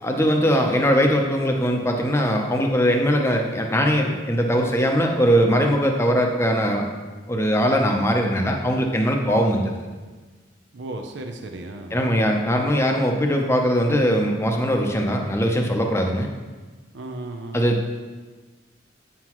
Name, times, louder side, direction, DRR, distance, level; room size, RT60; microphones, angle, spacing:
voice 1, 0.0-6.8 7.3-9.6 11.9-16.3 17.5-17.9, equal, 15° left, 2 dB, 0.7 m, -20 dB
voice 2, 10.7-12.2 16.9-17.6, right 2 dB, 70° right, 4 dB, 0.6 m, -35 dB
8.7 x 5.8 x 3.0 m, 1.3 s
head